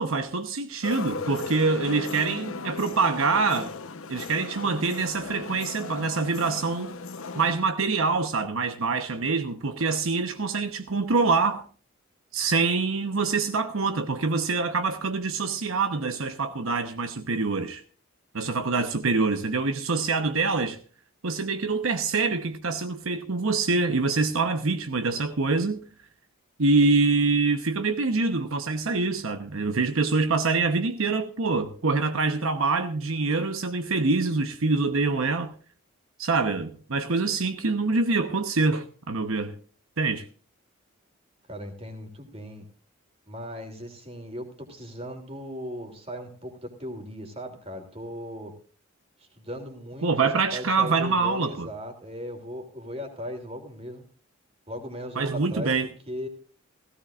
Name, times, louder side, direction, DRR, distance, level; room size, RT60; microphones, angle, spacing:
voice 1, 0.0-3.8 4.1-6.9 7.3-11.6 12.3-17.8 18.3-20.8 21.2-25.8 26.6-35.5 36.2-39.5 40.0-40.2 50.0-51.7 55.2-55.9, right 4 dB, 75° right, 1.0 m, -25 dB
sound 1, 0.8-7.5, left 4 dB, 80° left, 1.0 m, -36 dB
voice 2, 41.5-42.7 43.3-48.5 49.2-54.0 54.7-55.7 56.1-56.3, equal, 30° right, 3.0 m, -38 dB
17.0 x 16.0 x 2.5 m
head